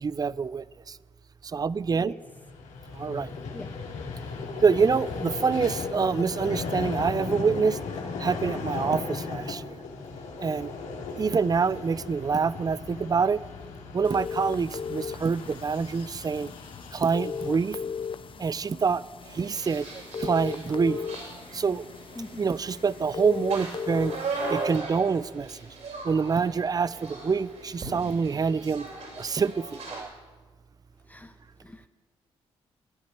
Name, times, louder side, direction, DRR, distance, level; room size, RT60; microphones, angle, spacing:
voice 1, 0.0-0.6 1.5-2.1 3.0-3.3 4.6-7.8 8.2-9.7 10.4-10.7 11.2-13.4 13.9-16.5 16.9-17.8 18.4-19.0 19.3-19.9 20.2-21.0 21.5-21.8 22.4-24.1 24.5-25.5 26.0-28.9 29.2-30.1, right 5 dB, 30° right, 20 dB, 0.5 m, -26 dB
voice 2, 1.9-2.2 3.5-3.8 22.1-22.5 31.0-31.9, left 2 dB, 15° left, 7 dB, 1.0 m, -44 dB
Vehicle, 2.2-18.6, left 4 dB, 80° left, 2.6 m, -37 dB
sound 1, 14.0-24.7, left 6 dB, 45° left, 0.6 m, -37 dB
sound 2, 19.2-30.0, right 3 dB, 70° right, 6.7 m, -38 dB
14.0 x 10.5 x 9.8 m, 1.5 s
supercardioid pair, 55°, 12 cm